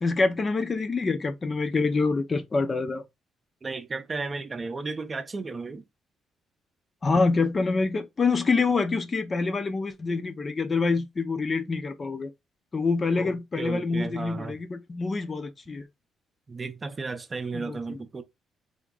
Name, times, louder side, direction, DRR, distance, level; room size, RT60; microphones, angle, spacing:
voice 1, 0.0-3.0 7.0-12.3 12.7-15.9 17.5-18.0, left 4 dB, 35° left, 0.6 m, -26 dB
voice 2, 3.6-5.8 13.2-14.6 16.5-18.2, right 3 dB, 30° right, 0.6 m, -34 dB
3.6 x 2.1 x 3.8 m
cardioid pair, 90°, 0 cm